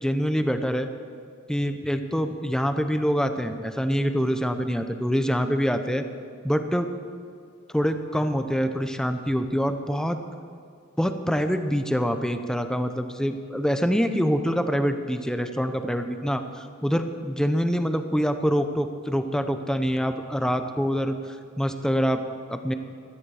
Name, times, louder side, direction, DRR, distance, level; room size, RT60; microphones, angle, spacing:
voice 1, 0.0-0.9 1.5-6.0 6.4-6.9 7.7-10.2 11.0-22.2 22.5-22.7, equal, 5° left, 7 dB, 0.8 m, -25 dB
16.5 x 13.5 x 4.9 m, 2.3 s
head